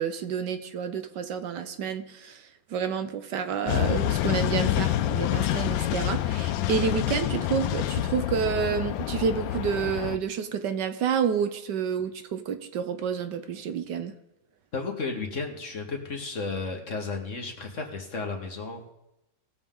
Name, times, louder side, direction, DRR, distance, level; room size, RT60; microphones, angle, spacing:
voice 1, 0.0-14.1, right 7 dB, 70° right, 9 dB, 1.3 m, -29 dB
sound 1, 3.7-10.2, left 13 dB, 80° left, 1.3 m, -27 dB
voice 2, 14.7-18.9, left 4 dB, 45° left, 2 dB, 1.6 m, -33 dB
19.5 x 7.0 x 3.7 m, 0.91 s
omnidirectional pair, 2.0 m